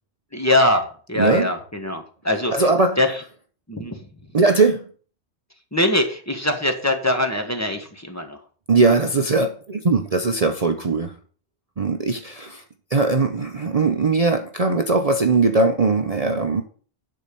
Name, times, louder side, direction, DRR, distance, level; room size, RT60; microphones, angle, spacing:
voice 1, 0.3-2.7 3.0-3.2 3.7-4.1 5.7-8.4, left 1 dB, 15° left, 4 dB, 1.3 m, -22 dB
voice 2, 2.5-3.0 4.3-4.8 8.7-11.1 11.8-12.6 12.9-16.6, right 3 dB, 40° right, 5 dB, 0.7 m, -20 dB
10.0 x 4.3 x 6.8 m, 0.43 s
omnidirectional pair, 1.1 m